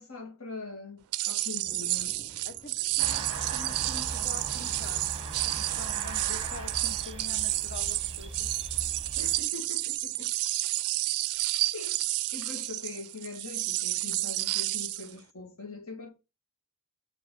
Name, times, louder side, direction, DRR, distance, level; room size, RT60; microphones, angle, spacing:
voice 1, 0.0-2.2 9.2-10.3 11.7-12.0 12.3-16.1, left 3 dB, 65° left, 1.7 m, -42 dB
sound 1, 1.1-15.1, right 18 dB, 75° right, 0.3 m, -30 dB
Thunder, 1.6-10.6, equal, 10° left, 1.3 m, -57 dB
voice 2, 2.5-5.1 5.5-8.5, left 4 dB, 45° left, 0.8 m, -45 dB
sound 2, 3.0-9.4, right 3 dB, 25° right, 0.9 m, -39 dB
7.9 x 3.1 x 5.0 m
head